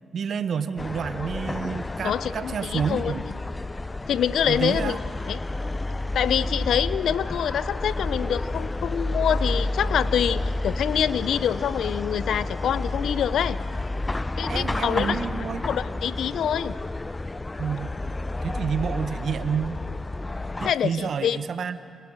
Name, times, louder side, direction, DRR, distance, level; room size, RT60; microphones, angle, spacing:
voice 1, 0.1-3.2 4.5-5.0 14.5-15.6 17.6-18.0 18.4-19.8 20.6-21.8, right 7 dB, 65° right, 11 dB, 1.4 m, -29 dB
sound 1, 0.8-20.7, left 2 dB, 25° left, 0.7 m, -30 dB
voice 2, 2.0-3.3 4.1-5.0 5.3-5.4 6.1-13.6 14.4-15.2 15.6-16.7 20.6-21.4, left 9 dB, 75° left, 17 dB, 0.7 m, -26 dB
29.0 x 28.5 x 6.5 m, 2.3 s
supercardioid pair, 50°, 0 cm